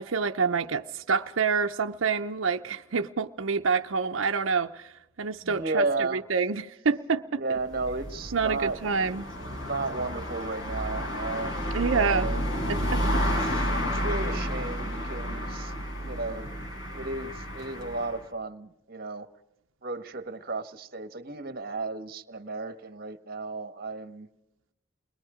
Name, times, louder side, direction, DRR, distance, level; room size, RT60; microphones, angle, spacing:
voice 1, 0.0-4.9 5.2-7.4 8.3-9.3 11.7-12.3 12.7-13.2, right 5 dB, 90° right, 0.7 m, -27 dB
voice 2, 5.4-6.2 7.3-9.1 9.6-12.6 13.3-15.7 16.0-16.5 16.9-19.3 19.8-24.3, right 3 dB, 50° right, 1.4 m, -34 dB
sound 1, 7.6-18.2, equal, 70° left, 5.4 m, -31 dB
29.0 x 21.5 x 5.0 m
head